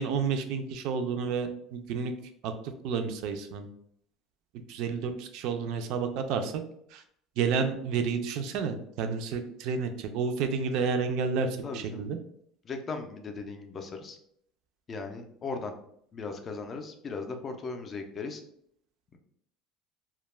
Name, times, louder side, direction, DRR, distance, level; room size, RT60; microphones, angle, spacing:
voice 1, 0.0-2.1 2.4-2.5 2.8-3.7 4.7-6.5 6.9-7.0 7.4-11.5 11.7-12.2, right 5 dB, 60° right, 7 dB, 0.3 m, -30 dB
voice 2, 11.6-12.1 12.6-14.2 14.9-15.7 16.1-18.4 19.1-19.2, left 4 dB, 25° left, 5 dB, 0.4 m, -37 dB
2.2 x 2.1 x 3.1 m, 0.69 s
cardioid pair, 150°, 0 cm